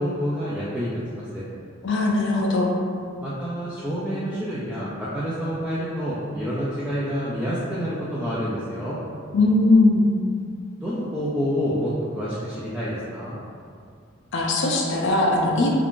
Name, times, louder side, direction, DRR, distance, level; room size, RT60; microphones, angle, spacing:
voice 1, 0.0-1.4 3.2-9.0 10.8-13.3, equal, 5° right, -10 dB, 0.3 m, -28 dB
voice 2, 1.8-2.7 9.3-10.1 14.3-15.7, left 2 dB, 60° left, -1 dB, 0.5 m, -19 dB
2.4 x 2.4 x 3.6 m, 2.2 s
head